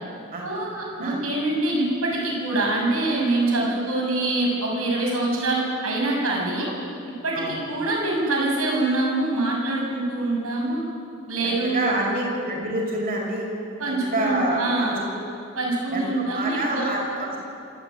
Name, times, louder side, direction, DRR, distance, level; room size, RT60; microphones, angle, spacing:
voice 1, 0.4-6.7 7.2-10.8 11.3-11.9 13.8-15.0 15.6-16.9, right 2 dB, 85° right, -2 dB, 7.0 m, -24 dB
voice 2, 11.6-13.5 14.1-15.2 15.9-17.4, right 1 dB, 45° right, -2 dB, 6.1 m, -27 dB
25.5 x 13.5 x 9.3 m, 2.6 s
head